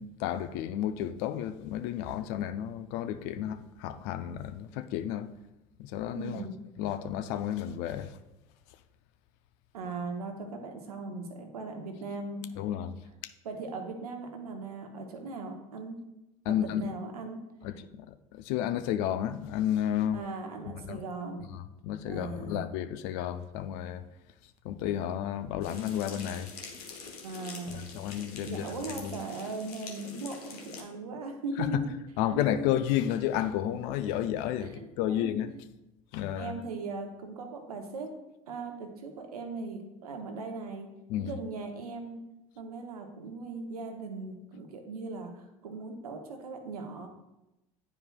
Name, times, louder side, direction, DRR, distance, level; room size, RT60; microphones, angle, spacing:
voice 1, 0.0-5.3 5.8-6.4 6.8-8.2 12.6-12.9 16.5-16.9 17.6-20.3 20.6-21.0 21.5-24.0 24.6-26.5 27.0-27.1 27.7-29.2 31.6-31.8 32.2-35.5 36.1-36.6 41.1-41.3, left 11 dB, 60° left, 0.5 m, -32 dB
voice 2, 6.1-6.6 9.7-12.5 13.4-16.0 16.5-17.4 20.1-21.5 22.1-22.6 27.2-27.9 28.4-31.9 32.3-32.7 34.6-35.4 36.3-38.1 38.5-40.9 41.2-42.2 42.6-47.1, right 3 dB, 80° right, 0.9 m, -39 dB
sound 1, 25.6-30.8, left 5 dB, 75° left, 1.1 m, -45 dB
9.8 x 4.6 x 2.3 m
figure-of-eight pair, 70°, 19 cm